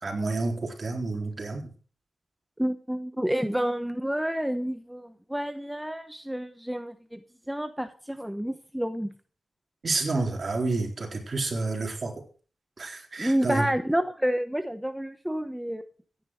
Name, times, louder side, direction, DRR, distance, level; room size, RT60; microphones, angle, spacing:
voice 1, 0.0-1.7 9.8-12.1 12.8-13.7, right 3 dB, 50° right, 4.0 m, -29 dB
voice 2, 2.6-7.2 7.5-9.1 13.2-15.8, equal, 5° right, 1.0 m, -29 dB
15.0 x 10.0 x 4.8 m
cardioid pair, 75°, 0 cm